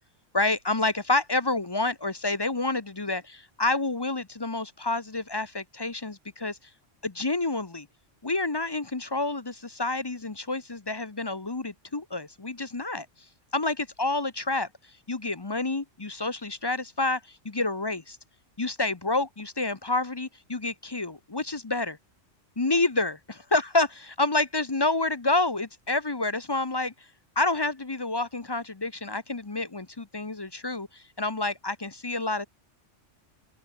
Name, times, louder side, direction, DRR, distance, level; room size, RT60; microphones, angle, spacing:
voice 1, 0.3-6.6 7.0-7.9 8.2-13.1 13.5-14.7 15.1-18.2 18.6-22.0 22.6-23.1 23.5-26.9 27.4-32.5, left 2 dB, 25° left, 0.8 m, -28 dB
open air
omnidirectional pair, 1.2 m